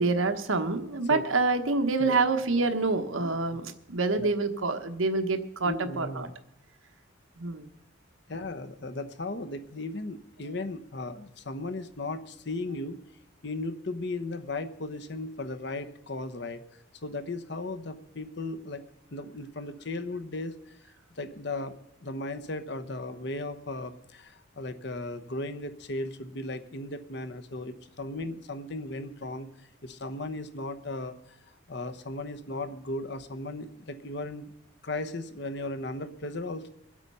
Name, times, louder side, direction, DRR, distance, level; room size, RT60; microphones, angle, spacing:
voice 1, 0.0-6.3 7.4-7.7, right 3 dB, 90° right, 7 dB, 1.3 m, -27 dB
voice 2, 5.6-6.3 8.3-13.0 13.4-16.6 17.0-18.8 19.1-20.8 21.2-21.7 22.0-29.5 29.8-34.5 34.8-36.7, left 2 dB, 55° left, 9 dB, 1.0 m, -36 dB
23.0 x 8.1 x 5.6 m, 0.81 s
head